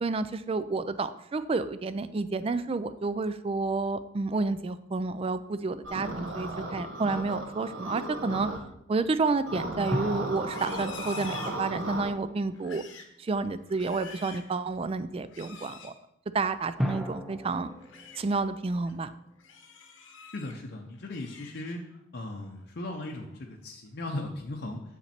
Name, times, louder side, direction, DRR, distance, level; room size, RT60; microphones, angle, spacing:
voice 1, 0.0-8.5 8.9-12.8 13.2-15.9 16.3-17.7 18.2-19.1, right 3 dB, 30° right, 13 dB, 0.3 m, -30 dB
sound 1, 5.8-8.6 9.5-12.1, right 1 dB, 80° right, 1.2 m, -35 dB
sound 2, 9.9-12.7 16.8-20.0, equal, ahead, 0.7 m, -38 dB
Livestock farm animals working animals, 10.4-12.1 12.5-13.2 13.6-14.5 15.3-15.9 17.6-18.2 18.7-18.9 19.4-20.6 20.9-22.0 22.4-22.7 23.1-23.5, left 6 dB, 80° left, 1.0 m, -47 dB
voice 2, 20.3-21.8 22.1-24.8, left 2 dB, 55° left, 1 dB, 0.7 m, -37 dB
7.2 x 6.0 x 4.3 m, 0.79 s
head